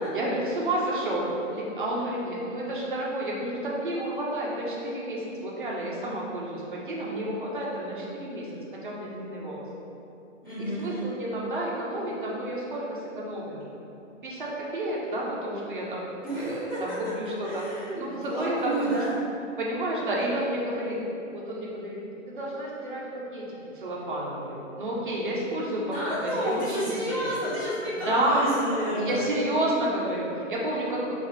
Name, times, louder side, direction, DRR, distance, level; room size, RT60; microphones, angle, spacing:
voice 1, 0.1-8.5 8.8-9.6 10.6-13.6 14.2-16.0 16.3-17.6 18.0-18.9 19.6-21.0 21.3-22.0 22.3-23.5 23.7-27.3 27.9-28.5 28.9-31.1, right 1 dB, 40° right, -4 dB, 0.5 m, -30 dB
voice 2, 10.4-11.0 16.2-16.8 17.4-19.1 25.9-29.2, right 1 dB, 15° left, -14 dB, 0.5 m, -30 dB
2.6 x 2.4 x 3.3 m, 2.8 s
hypercardioid pair, 170°, 39 cm